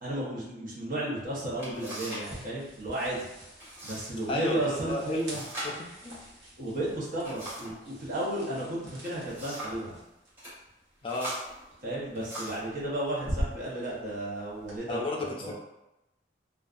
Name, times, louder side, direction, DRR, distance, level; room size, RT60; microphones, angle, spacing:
voice 1, 0.0-3.3 3.8-5.4 6.6-10.0 11.8-15.5, right 1 dB, 50° right, -5 dB, 0.8 m, -33 dB
sound 1, 1.1-1.2 1.6-2.3 2.6-3.1 3.6-4.1 4.4-4.5 5.2-7.8 8.8-9.9 10.3-10.6 11.1-12.7 13.5-13.7 14.2-14.7, right 1 dB, 15° right, 1.2 m, -41 dB
sound 2, 1.2-14.8, equal, 85° right, 1.0 m, -44 dB
voice 2, 4.3-5.2 5.6-6.2 11.0-11.3 14.9-15.5, left 2 dB, 30° left, -2 dB, 0.4 m, -33 dB
2.6 x 2.3 x 2.3 m, 0.93 s
head